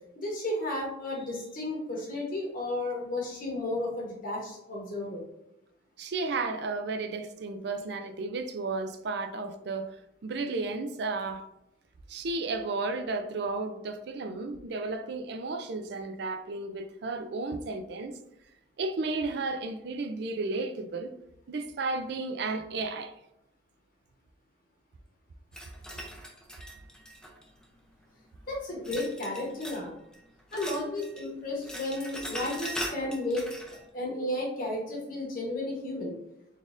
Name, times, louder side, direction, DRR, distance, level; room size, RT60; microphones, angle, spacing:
voice 1, 0.1-5.2 28.5-29.9 30.5-36.1, left 1 dB, 45° left, 1.0 m, -33 dB
voice 2, 6.0-9.9 10.2-11.5 12.1-18.2 18.8-21.1 21.5-23.1, right 3 dB, 55° right, 0.4 m, -33 dB
sound 1, 25.5-27.6 28.8-29.9 30.1-31.3 31.5-33.8, equal, 5° left, 0.5 m, -40 dB
4.0 x 3.5 x 2.5 m
head